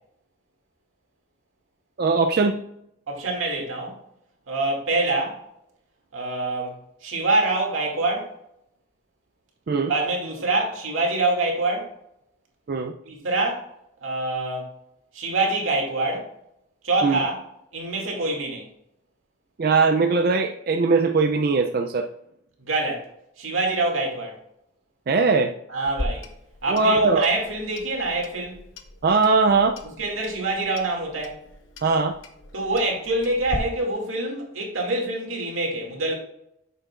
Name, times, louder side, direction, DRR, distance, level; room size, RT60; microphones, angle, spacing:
voice 1, 2.0-2.6 9.7-9.9 12.7-12.9 17.0-17.2 19.6-22.1 25.1-25.5 26.7-27.3 29.0-29.8 31.8-32.2, right 4 dB, 50° right, 0.4 m, -20 dB
voice 2, 3.1-4.0 4.5-5.4 6.1-8.3 9.9-11.9 13.1-13.7 14.0-14.7 15.1-16.3 16.8-17.4 17.7-18.7 22.6-23.1 23.4-24.4 25.7-26.2 26.6-28.6 30.0-31.4 32.5-36.1, right 2 dB, 85° right, 2.3 m, -25 dB
Clock, 25.8-33.6, left 1 dB, 75° left, 0.9 m, -39 dB
9.0 x 6.8 x 2.4 m
head